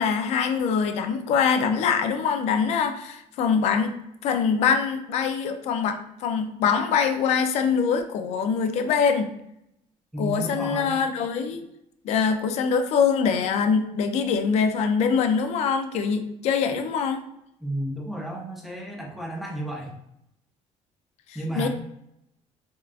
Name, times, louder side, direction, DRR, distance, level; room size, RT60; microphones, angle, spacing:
voice 1, 0.0-3.9 4.2-9.3 10.2-11.7 12.0-17.2 21.6-21.7, left 6 dB, 65° left, 6 dB, 0.4 m, -23 dB
voice 2, 10.1-11.0 17.6-19.9 21.3-21.7, right 1 dB, ahead, -1 dB, 0.5 m, -32 dB
3.5 x 2.3 x 2.4 m, 0.82 s
cardioid pair, 170°, 12 cm